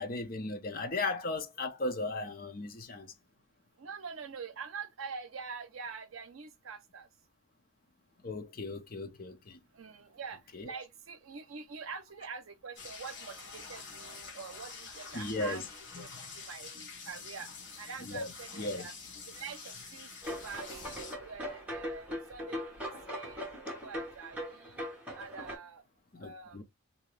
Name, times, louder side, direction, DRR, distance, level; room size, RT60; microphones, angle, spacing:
voice 1, 0.0-3.1 8.2-9.6 10.5-10.6 15.1-15.6 15.9-16.3 18.0-18.9 26.1-26.6, left 2 dB, 45° left, 0.5 m, -37 dB
voice 2, 3.8-7.1 9.8-15.6 16.0-16.1 16.3-17.5 17.8-18.9 19.4-23.4 23.8-24.8 25.2-25.8 26.2-26.6, right 5 dB, 85° right, 0.6 m, -45 dB
sound 1, 12.8-21.2, left 4 dB, 60° left, 1.0 m, -47 dB
sound 2, 20.2-25.5, equal, 5° right, 1.2 m, -40 dB
2.8 x 2.6 x 3.1 m
head